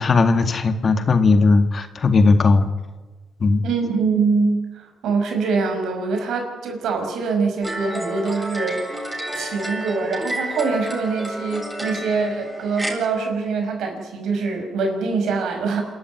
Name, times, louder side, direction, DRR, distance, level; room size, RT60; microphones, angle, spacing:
voice 1, 0.0-2.7 3.4-3.6, left 3 dB, 40° left, 8 dB, 2.1 m, -17 dB
voice 2, 3.6-15.8, right 4 dB, 75° right, 4 dB, 5.9 m, -24 dB
sound 1, 7.6-12.9, right 1 dB, 10° right, 7.9 m, -30 dB
28.0 x 13.0 x 9.6 m, 1.2 s
cardioid pair, 90°, 0 cm